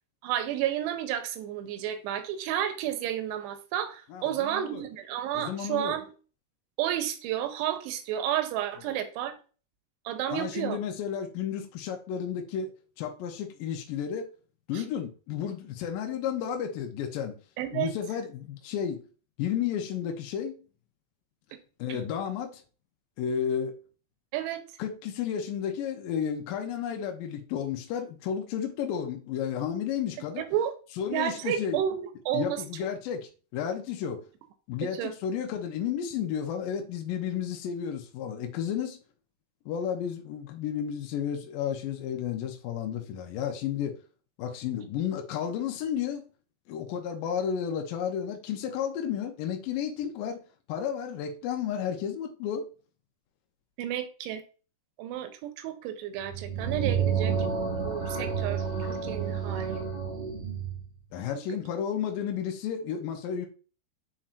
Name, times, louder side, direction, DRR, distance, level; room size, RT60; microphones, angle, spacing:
voice 1, 0.2-6.1 6.8-9.4 10.1-10.8 14.7-14.8 17.6-17.9 21.9-22.0 24.3-24.6 30.4-30.7 31.1-32.6 34.8-35.1 53.8-54.4 55.0-57.3 57.8-59.8, right 11 dB, 85° right, 2.8 m, -31 dB
voice 2, 4.1-4.8 5.3-6.0 10.3-14.3 14.7-17.4 17.7-19.0 19.4-20.6 21.8-22.6 23.2-23.8 24.8-30.5 31.0-31.8 32.3-34.2 34.7-39.0 39.7-44.0 44.4-46.2 46.7-50.4 50.7-52.7 61.1-63.5, left 8 dB, 85° left, 1.9 m, -32 dB
sound 1, 56.2-60.9, right 6 dB, 35° right, 1.2 m, -30 dB
8.9 x 4.3 x 2.5 m
omnidirectional pair, 5.0 m